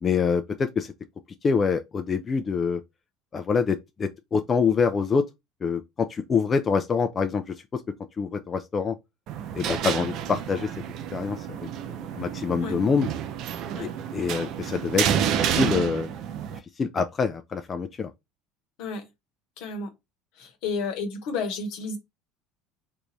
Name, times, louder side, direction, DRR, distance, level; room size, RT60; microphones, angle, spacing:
voice 1, 0.0-0.9 1.4-2.8 3.3-5.2 5.6-7.8 8.2-8.9 9.5-10.7 11.1-11.6 12.1-13.1 14.1-16.1 16.5-18.1, left 5 dB, 35° left, 0.4 m, -25 dB
Heavy Metal Door (Close), 9.3-16.6, right 9 dB, 60° right, 0.5 m, -29 dB
voice 2, 19.6-19.9 20.4-22.0, left 4 dB, 70° left, 1.0 m, -31 dB
3.5 x 2.6 x 3.0 m
hypercardioid pair, 75°, 0 cm